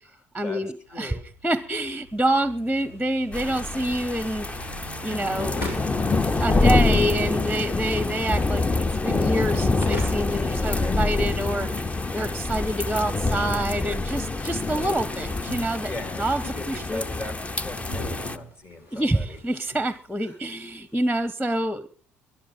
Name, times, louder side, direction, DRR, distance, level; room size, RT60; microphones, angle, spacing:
voice 1, 0.3-1.1 1.4-4.5 5.0-5.7 6.4-15.9 16.2-17.0 18.9-21.9, right 1 dB, ahead, 16 dB, 0.9 m, -27 dB
Car passing by / Idling, 0.9-11.5, right 3 dB, 85° left, 3.3 m, -48 dB
voice 2, 0.9-1.3 10.4-11.0 14.4-19.4 20.2-20.4, left 2 dB, 40° left, 7 dB, 3.6 m, -40 dB
sound 1, 2.0-21.2, equal, 70° left, 5.1 m, -43 dB
sound 2, 3.3-18.4, left 3 dB, 20° left, 0.7 m, -26 dB
22.0 x 11.5 x 3.8 m, 0.38 s
figure-of-eight pair, 50°, 7 cm